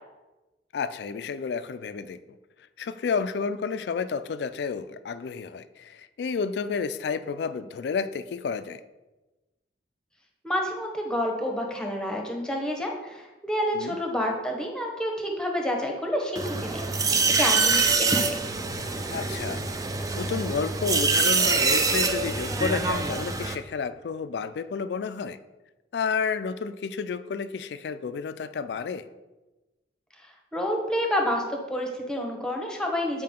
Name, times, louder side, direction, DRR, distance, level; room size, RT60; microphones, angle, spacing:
voice 1, 0.7-2.2 2.8-8.8 13.7-14.0 19.1-19.6 19.9-25.4 25.9-29.0, left 5 dB, 65° left, 13 dB, 0.3 m, -31 dB
voice 2, 10.4-16.8 17.3-18.4 30.2-33.2, equal, 5° left, 1 dB, 0.9 m, -29 dB
sound 1, 16.4-23.6, right 4 dB, 20° right, 0.4 m, -25 dB
7.6 x 4.7 x 3.6 m, 1.1 s
head